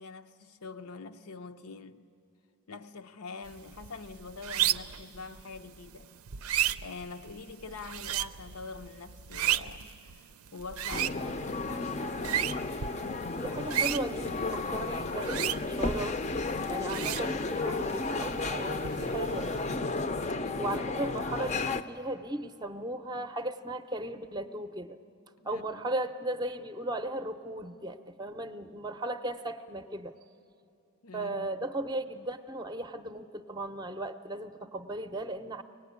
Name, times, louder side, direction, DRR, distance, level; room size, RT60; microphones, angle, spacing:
voice 1, 0.0-2.0 2.7-6.1 6.8-9.9 10.5-12.5 25.4-25.7 31.0-31.5, left 4 dB, 90° left, 0.8 m, -44 dB
sound 1, 3.5-19.8, right 11 dB, 80° right, 0.5 m, -35 dB
sound 2, 10.9-21.8, left 3 dB, 30° left, 0.5 m, -33 dB
voice 2, 13.4-16.2 16.7-19.6 20.6-25.0 25.4-30.1 31.1-35.6, right 1 dB, 20° right, 0.6 m, -36 dB
23.5 x 19.0 x 9.4 m
head